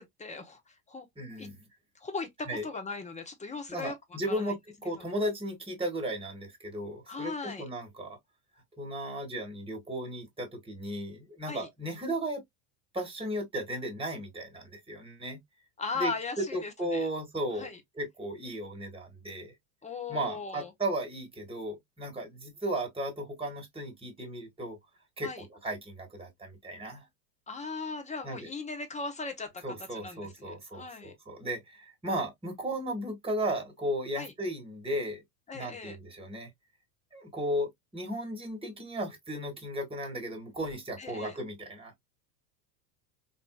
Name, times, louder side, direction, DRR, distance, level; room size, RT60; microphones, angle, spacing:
voice 1, 0.0-1.1 1.4-1.5 1.9-3.9 4.3-4.5 4.9-5.0 7.1-7.7 11.5-11.7 15.8-17.1 17.6-17.8 19.8-20.7 25.2-25.4 27.5-31.1 34.2-34.3 35.5-36.0 41.0-41.4, left 4 dB, 15° left, 0.9 m, -38 dB
voice 2, 1.2-1.6 2.5-2.6 3.7-8.2 8.8-12.4 12.9-15.4 16.0-19.5 20.1-24.8 25.2-27.0 28.2-28.5 29.6-35.2 35.5-36.5 37.1-41.9, right 1 dB, 10° right, 1.6 m, -35 dB
4.0 x 2.6 x 2.3 m
supercardioid pair, 115°, 49 cm